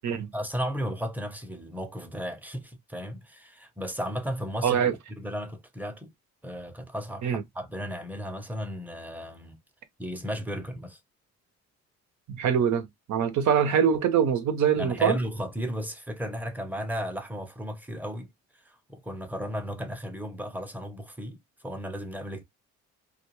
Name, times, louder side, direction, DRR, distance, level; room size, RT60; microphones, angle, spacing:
voice 1, 0.3-6.1 6.4-9.6 10.0-11.0 14.8-18.3 18.9-21.4 21.6-22.4, equal, 5° right, 0.7 m, -34 dB
voice 2, 4.6-4.9 7.2-7.4 12.3-15.2, right 8 dB, 70° right, 0.8 m, -24 dB
2.4 x 2.3 x 2.9 m
cardioid pair, 90°, 30 cm